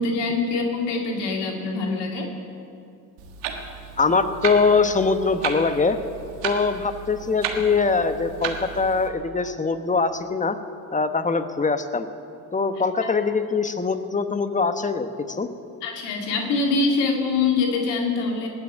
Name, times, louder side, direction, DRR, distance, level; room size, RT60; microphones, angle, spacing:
voice 1, 0.0-2.3 13.0-13.1 15.8-18.5, left 3 dB, 75° left, 1 dB, 2.2 m, -24 dB
Clock, 3.2-9.1, right 7 dB, 85° right, 1.6 m, -34 dB
voice 2, 4.0-6.0 6.4-10.6 10.9-12.1 12.5-15.1 15.4-15.5, left 4 dB, 20° left, 9 dB, 1.1 m, -22 dB
19.0 x 6.3 x 8.9 m, 2.5 s
supercardioid pair, 65°, 42 cm